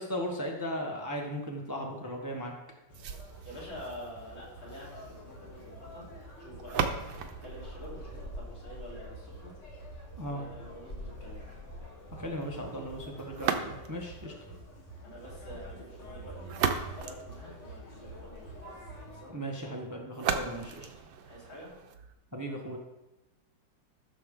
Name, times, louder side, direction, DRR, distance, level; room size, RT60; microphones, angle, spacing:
voice 1, 0.0-2.5 10.2-10.4 12.2-14.3 19.3-20.9 22.3-22.8, equal, 10° right, 1 dB, 0.9 m, -37 dB
Conversation, 2.9-19.2, equal, 70° left, 3.0 m, -46 dB
sound 1, 2.9-8.9 13.3-14.2 16.2-18.1 20.1-22.1, right 7 dB, 80° right, 1.6 m, -36 dB
voice 2, 3.4-6.1 6.4-9.6 10.2-11.4 12.7-12.8 15.0-18.7 19.0-19.4 21.2-21.7, equal, 85° left, -7 dB, 4.5 m, -47 dB
14.0 x 6.6 x 3.7 m, 0.99 s
omnidirectional pair, 2.1 m